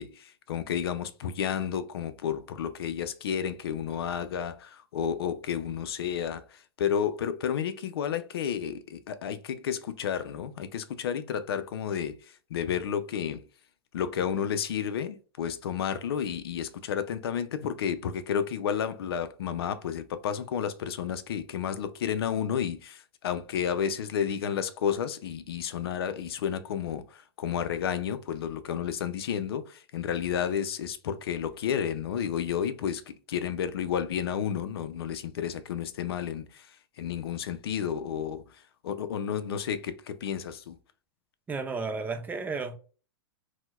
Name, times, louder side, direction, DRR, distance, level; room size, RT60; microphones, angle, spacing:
voice 1, 0.0-12.2 12.5-13.4 13.9-33.0 33.3-38.4 38.8-40.8, left 8 dB, 75° left, 0.4 m, -31 dB
voice 2, 41.5-42.8, right 4 dB, 15° right, 0.4 m, -33 dB
4.3 x 2.1 x 2.3 m
hypercardioid pair, 120°, 13 cm